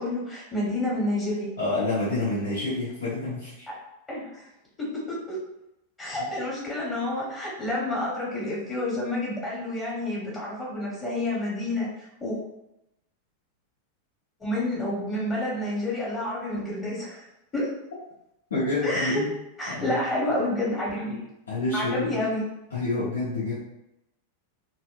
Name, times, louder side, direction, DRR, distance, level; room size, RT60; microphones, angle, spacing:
voice 1, 0.0-1.5 3.7-3.8 4.1-4.4 4.8-5.4 6.0-11.9 12.2-12.4 14.4-17.2 17.5-17.7 18.8-19.2 19.6-21.2 21.7-22.5, left 1 dB, 20° left, -5 dB, 1.2 m, -29 dB
voice 2, 1.6-3.6 6.2-6.3 18.5-19.2 19.7-19.9 21.5-22.2 22.7-23.5, left 2 dB, 65° left, -10 dB, 1.0 m, -28 dB
4.1 x 2.2 x 2.5 m, 0.86 s
figure-of-eight pair, 90°, 0 cm